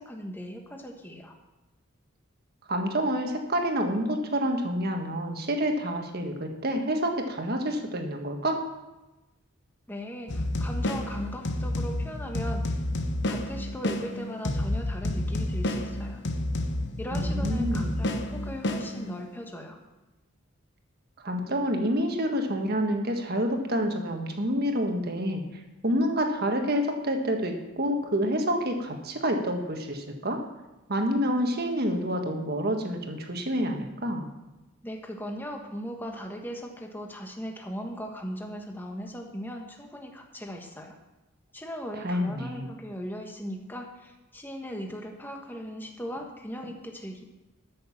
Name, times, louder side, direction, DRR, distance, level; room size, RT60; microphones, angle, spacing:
voice 1, 0.0-1.3 9.9-12.8 13.3-16.2 17.0-19.8 34.8-40.9 41.5-47.2, equal, 10° left, 2 dB, 1.4 m, -38 dB
voice 2, 2.7-8.6 17.1-18.0 21.2-25.4 25.8-30.4 30.9-34.3 42.0-42.7, equal, 50° right, 4 dB, 1.6 m, -28 dB
sound 1, 10.3-19.4, left 1 dB, 60° left, 0.9 m, -30 dB
13.0 x 6.6 x 7.2 m, 1.1 s
head